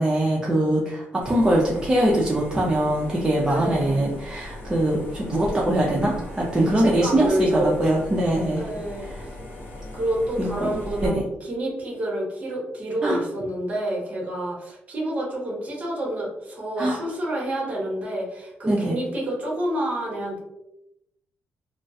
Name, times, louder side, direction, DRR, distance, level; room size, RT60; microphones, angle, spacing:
voice 1, 0.0-8.6 9.0-9.2 10.4-10.7 11.0-11.2 13.0-13.2 16.8-17.0 18.7-19.0, right 1 dB, 15° right, -5 dB, 0.4 m, -22 dB
sound 1, 1.2-11.1, left 1 dB, 60° left, 0.6 m, -38 dB
voice 2, 3.5-4.1 6.6-7.9 8.6-9.4 9.9-20.4, right 1 dB, 35° right, -2 dB, 0.8 m, -28 dB
2.3 x 2.1 x 2.6 m, 0.85 s
cardioid pair, 145°, 4 cm